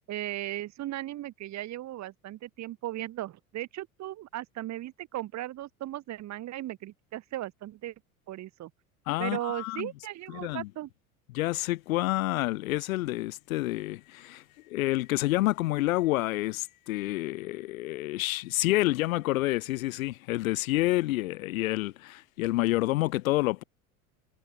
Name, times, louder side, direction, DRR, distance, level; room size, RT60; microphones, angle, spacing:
voice 1, 0.1-7.9 8.3-8.7 9.2-10.9, right 14 dB, 40° right, 1.6 m, -37 dB
voice 2, 9.1-9.9 10.3-10.7 11.3-23.6, left 18 dB, 70° left, 0.7 m, -28 dB
figure-of-eight pair, 75°, 43 cm